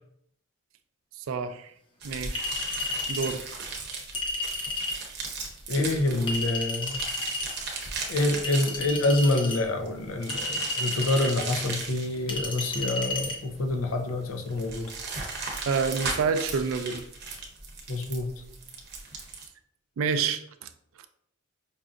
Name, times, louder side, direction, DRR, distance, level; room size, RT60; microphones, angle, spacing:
voice 1, 1.2-1.7 2.0-2.5 3.1-3.4 15.7-17.0 20.0-20.7, right 5 dB, 65° right, 9 dB, 0.3 m, -28 dB
sound 1, 2.0-19.5, right 3 dB, 50° right, 0.8 m, -37 dB
Chink clink, 2.4-3.3 4.1-5.0 6.3-7.5 8.4-9.6 10.3-11.3 12.3-13.4, left 2 dB, 25° left, 0.7 m, -32 dB
voice 2, 5.7-7.0 8.1-14.9 17.9-18.3, left 2 dB, 75° left, 5 dB, 0.6 m, -27 dB
5.4 x 2.5 x 2.4 m, 0.71 s
head